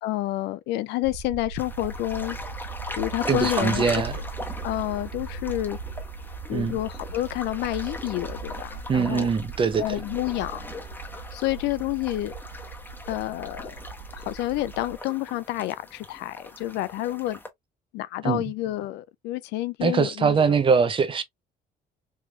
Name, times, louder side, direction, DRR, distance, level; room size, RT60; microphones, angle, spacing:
voice 1, 0.0-2.4 3.0-4.0 4.6-5.8 6.5-9.3 9.8-10.6 11.3-12.3 13.1-13.8 14.1-17.4 17.9-20.6, left 16 dB, 85° left, 0.4 m, -29 dB
sound 1, 1.0-14.9, right 4 dB, 70° right, 0.6 m, -39 dB
sound 2, 1.6-17.5, left 2 dB, 10° left, 0.9 m, -39 dB
voice 2, 3.3-4.2 6.5-6.8 8.9-9.8 18.2-18.4 19.8-21.2, right 5 dB, 30° right, 0.7 m, -22 dB
3.3 x 3.0 x 2.3 m
cardioid pair, 110°, 17 cm